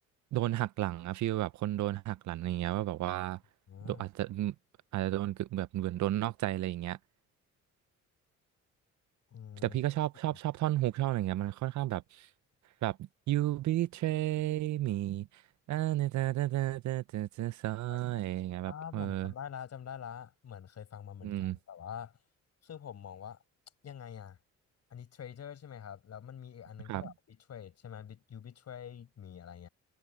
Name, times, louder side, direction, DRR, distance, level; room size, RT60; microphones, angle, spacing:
voice 1, 0.3-3.4 3.8-4.5 4.9-7.0 9.6-12.3 12.8-15.3 15.7-19.3 21.2-21.6 26.9-27.1, right 15 dB, 70° right, 0.7 m, -32 dB
voice 2, 3.7-4.0 9.3-9.8 10.3-10.4 17.9-18.2 18.6-22.2 22.6-23.4 23.8-24.4 24.9-29.7, left 8 dB, 60° left, 6.7 m, -46 dB
cardioid pair, 90°, 30 cm